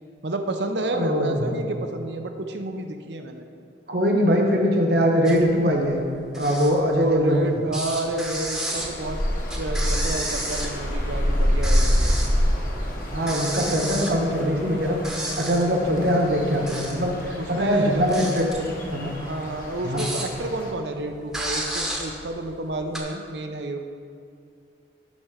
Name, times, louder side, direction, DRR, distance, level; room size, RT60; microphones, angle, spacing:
voice 1, 0.2-3.4 6.9-9.2 9.6-12.1 17.4-18.2 19.2-23.8, right 2 dB, 75° right, 6 dB, 0.7 m, -30 dB
voice 2, 0.9-1.5 3.9-6.0 6.4-7.4 13.1-15.0 15.4-18.6 18.9-19.1 19.8-20.0, equal, 60° right, 1 dB, 1.2 m, -22 dB
sound 1, 5.2-5.6 5.9-7.4 7.7-11.1 11.4-12.4 12.7-12.8 13.2-14.7 15.0-15.8 16.4-17.2 17.6-20.6 20.9-21.0 21.3-23.0, right 1 dB, ahead, 1.0 m, -32 dB
sound 2, 8.7-20.7, equal, 50° left, 1.5 m, -27 dB
11.5 x 4.4 x 5.1 m, 2.3 s
head